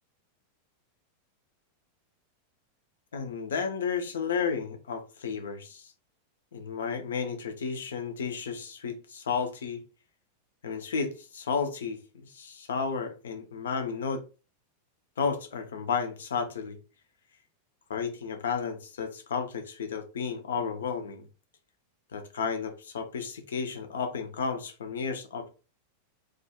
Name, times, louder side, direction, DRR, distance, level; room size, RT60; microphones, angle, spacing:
voice 1, 3.1-5.9 6.5-9.8 10.6-12.0 12.3-14.2 15.2-16.8 17.9-21.3 22.1-25.5, left 5 dB, 65° left, 0.5 m, -32 dB
2.3 x 2.3 x 2.7 m
figure-of-eight pair, 90°, 0 cm